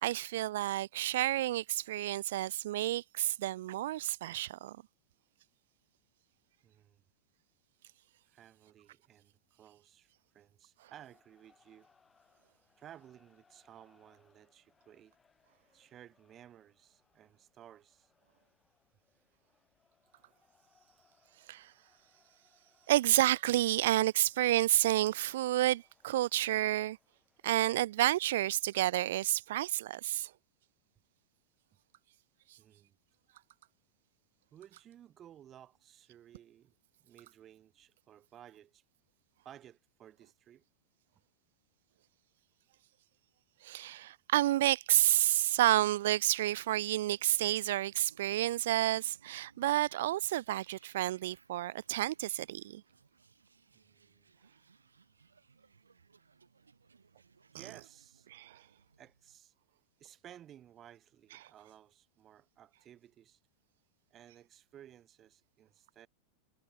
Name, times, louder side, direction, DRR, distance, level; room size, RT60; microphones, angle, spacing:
voice 1, 0.0-4.8 21.5-21.7 22.9-27.0 27.4-30.3 43.6-52.8 58.3-58.6, right 14 dB, 55° right, 0.4 m, -30 dB
voice 2, 6.6-7.0 8.3-11.9 12.8-15.1 15.7-18.1 22.1-22.2 32.6-33.0 34.5-36.7 37.0-38.8 39.4-40.6 53.7-54.3 57.5-58.3 59.0-59.5 60.0-63.4 64.1-66.1, right 10 dB, 30° right, 7.3 m, -57 dB
sound 1, 11.1-29.6, left 5 dB, 15° left, 6.3 m, -73 dB
sound 2, 46.6-59.4, right 5 dB, 75° right, 2.9 m, -65 dB
figure-of-eight pair, 90°, 0 cm